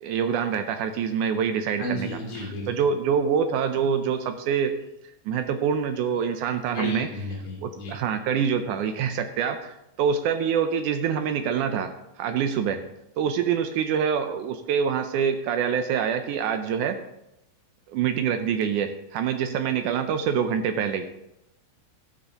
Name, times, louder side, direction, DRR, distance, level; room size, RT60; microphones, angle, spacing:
voice 1, 0.0-2.1 2.4-4.7 5.3-7.1 7.6-11.9 12.2-12.8 13.2-17.0 17.9-21.1, right 7 dB, 80° right, 7 dB, 1.8 m, -25 dB
voice 2, 1.8-2.7 6.7-7.9, left 1 dB, 45° left, -5 dB, 3.6 m, -32 dB
14.5 x 10.0 x 2.9 m, 0.88 s
omnidirectional pair, 4.2 m